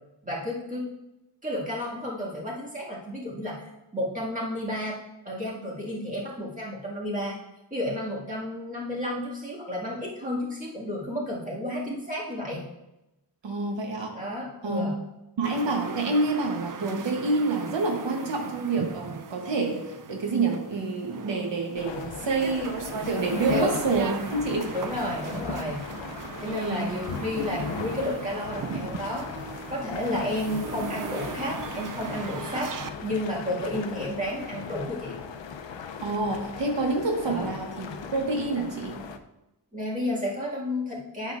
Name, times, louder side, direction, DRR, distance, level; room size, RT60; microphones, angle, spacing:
voice 1, 0.2-0.9 1.4-5.0 5.2-7.4 7.7-12.7 14.1-15.0 23.5-23.8 24.7-25.8 26.4-29.3 29.7-32.7 33.0-35.2 37.2-37.5 39.7-41.3, left 1 dB, 20° right, -5 dB, 2.1 m, -31 dB
voice 2, 13.4-14.2 14.6-14.8 15.4-22.8 23.1-24.7 26.4-26.9 36.0-37.8 38.1-39.0, right 3 dB, 80° right, 1 dB, 1.1 m, -27 dB
sound 1, 15.4-32.9, right 6 dB, 50° right, 0.5 m, -38 dB
sound 2, 21.8-39.2, left 6 dB, 90° left, 0.6 m, -38 dB
9.2 x 7.1 x 2.5 m, 0.94 s
wide cardioid pair, 120°, 43 cm